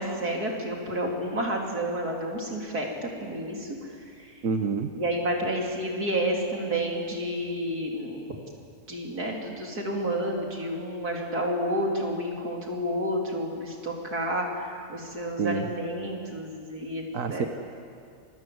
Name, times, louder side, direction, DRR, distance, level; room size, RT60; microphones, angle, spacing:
voice 1, 0.0-4.4 4.9-8.2 8.9-17.0 17.3-17.5, equal, 85° right, 0 dB, 4.3 m, -30 dB
voice 2, 4.4-5.0 15.4-15.7 17.1-17.5, right 5 dB, 60° right, 6 dB, 1.5 m, -28 dB
27.5 x 24.5 x 8.0 m, 2.3 s
omnidirectional pair, 1.6 m